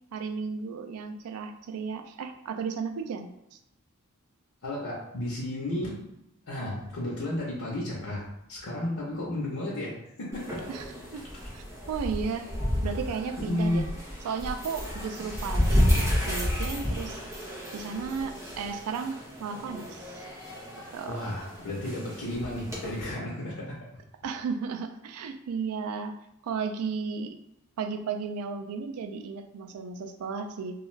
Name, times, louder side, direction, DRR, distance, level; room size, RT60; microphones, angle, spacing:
voice 1, 0.1-3.6 10.7-10.9 11.1-11.3 11.5-12.5 12.8-13.8 14.2-17.2 17.7-20.2 20.9-21.2 24.2-26.1 26.4-27.4 27.8-30.8, right 5 dB, 90° right, 7 dB, 0.3 m, -34 dB
voice 2, 4.6-6.0 6.4-10.6 13.5-13.8 21.1-23.8, left 1 dB, 90° left, -5 dB, 0.7 m, -33 dB
sound 1, 10.3-23.0, equal, 15° right, 0.7 m, -31 dB
2.4 x 2.3 x 3.0 m, 0.85 s
head